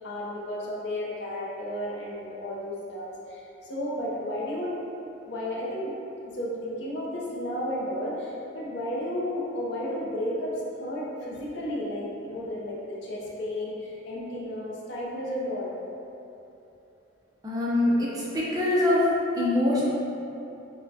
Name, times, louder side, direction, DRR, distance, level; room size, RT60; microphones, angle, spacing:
voice 1, 0.0-4.7 5.2-5.9 6.2-15.8, left 1 dB, 55° left, -5 dB, 0.5 m, -33 dB
voice 2, 17.4-19.1 19.3-19.9, left 1 dB, 15° right, -7 dB, 0.4 m, -24 dB
4.2 x 2.1 x 2.7 m, 2.9 s
head